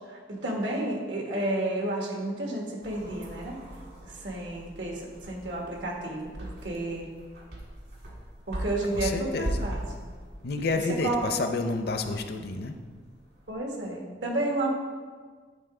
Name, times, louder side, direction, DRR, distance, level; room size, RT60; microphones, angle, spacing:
voice 1, 0.1-3.6 4.1-7.1 8.5-9.8 11.0-11.3 13.5-14.7, right 2 dB, 85° right, 0 dB, 1.5 m, -31 dB
sound 1, 2.8-13.5, right 1 dB, 65° right, 1.6 m, -40 dB
voice 2, 8.9-9.7 10.4-12.8, left 3 dB, 60° left, 7 dB, 0.5 m, -30 dB
9.0 x 3.9 x 4.8 m, 1.5 s
head